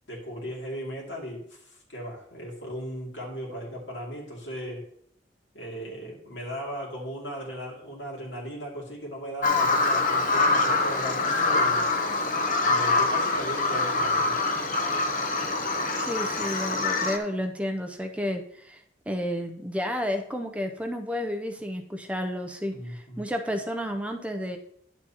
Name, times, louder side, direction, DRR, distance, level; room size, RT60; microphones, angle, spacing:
voice 1, 0.1-4.9 5.5-11.9 12.6-14.4 22.7-23.2, equal, 85° left, -2 dB, 2.5 m, -37 dB
Bird vocalization bird call bird song, 9.4-17.2, left 3 dB, 45° left, 0.9 m, -25 dB
voice 2, 16.0-18.8 19.1-24.6, equal, 5° right, 4 dB, 0.6 m, -31 dB
10.5 x 7.1 x 2.9 m, 0.69 s
head